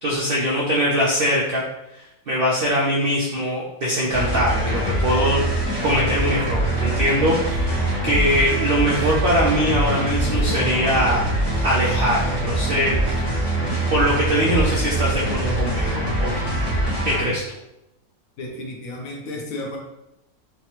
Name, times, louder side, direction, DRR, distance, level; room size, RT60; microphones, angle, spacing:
voice 1, 0.0-1.6 1.9-5.4 5.8-11.2 11.6-13.2 13.9-16.3 17.0-17.6, equal, 70° right, -4 dB, 0.5 m, -22 dB
sound 1, 4.1-17.2, right 1 dB, 20° left, 0.8 m, -23 dB
voice 2, 18.4-19.8, left 1 dB, 75° left, 1 dB, 1.0 m, -32 dB
3.3 x 2.0 x 2.8 m, 0.88 s
omnidirectional pair, 1.5 m